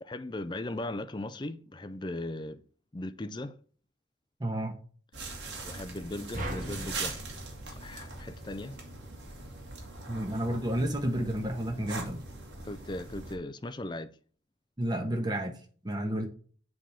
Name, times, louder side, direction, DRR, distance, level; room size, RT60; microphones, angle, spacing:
voice 1, 0.0-2.6 2.9-3.6 5.6-7.2 7.7-8.8 12.6-14.1, left 1 dB, 25° left, 0.4 m, -38 dB
voice 2, 4.4-4.8 10.1-12.2 14.8-15.5 15.8-16.3, right 1 dB, 20° right, 1.2 m, -31 dB
sound 1, 5.1-13.4, right 3 dB, 65° right, 2.0 m, -42 dB
sound 2, 6.3-8.7, right 1 dB, 40° right, 1.6 m, -40 dB
7.5 x 3.5 x 5.6 m
head